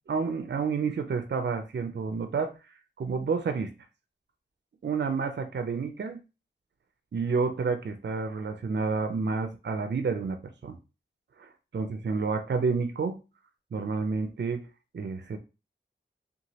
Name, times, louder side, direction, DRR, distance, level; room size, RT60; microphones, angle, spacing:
voice 1, 0.1-2.5 3.0-3.7 4.8-6.2 7.1-10.8 11.4-13.2 13.7-14.7 14.9-15.4, right 5 dB, 55° right, 7 dB, 0.4 m, -29 dB
3.0 x 2.3 x 2.7 m, 0.30 s
wide cardioid pair, 50°, 21 cm